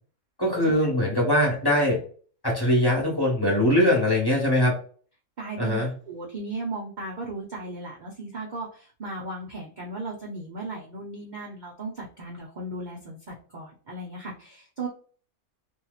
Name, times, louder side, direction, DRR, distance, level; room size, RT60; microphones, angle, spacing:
voice 1, 0.4-2.0 2.4-4.7 5.6-5.9, left 1 dB, 20° left, -4 dB, 1.1 m, -22 dB
voice 2, 5.4-5.8 6.1-14.9, right 2 dB, 45° right, -3 dB, 0.6 m, -36 dB
2.9 x 2.7 x 2.4 m, 0.43 s
omnidirectional pair, 1.5 m